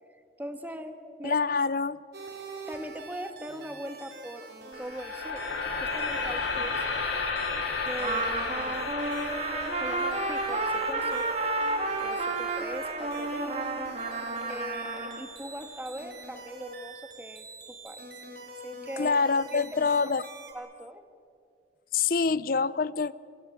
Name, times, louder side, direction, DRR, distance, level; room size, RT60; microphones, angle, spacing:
voice 1, 0.4-1.4 2.7-4.5 4.8-5.4 5.8-6.8 7.8-8.9 9.8-11.3 12.0-13.7 14.4-18.1 18.6-19.2 19.5-19.9 20.5-21.0, equal, 10° right, 7 dB, 1.5 m, -40 dB
voice 2, 1.2-2.0 19.0-20.2 21.9-23.1, left 4 dB, 50° left, 19 dB, 0.5 m, -26 dB
sound 1, 2.1-20.5, right 2 dB, 60° right, 4.1 m, -45 dB
sound 2, 4.7-14.8, left 4 dB, 90° left, 4.0 m, -34 dB
Trumpet, 8.0-15.2, right 3 dB, 35° right, 2.5 m, -31 dB
29.5 x 16.5 x 8.7 m, 2.3 s
head